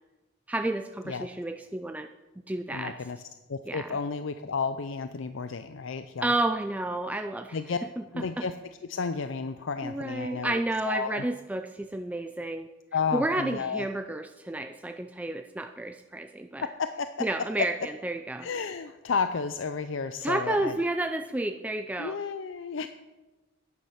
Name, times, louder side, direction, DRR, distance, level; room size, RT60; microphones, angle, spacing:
voice 1, 0.5-2.1 2.5-2.9 3.7-3.9 6.2-7.6 8.4-8.5 9.8-12.7 13.1-16.7 17.2-18.5 20.2-22.2, right 2 dB, 5° right, 6 dB, 0.4 m, -31 dB
voice 2, 2.7-3.2 3.5-6.3 7.5-7.8 8.1-8.6 8.9-11.2 12.9-13.9 16.6-17.1 18.4-20.7 22.0-22.9, left 5 dB, 65° left, 10 dB, 0.5 m, -32 dB
11.5 x 9.7 x 5.8 m, 1.1 s
head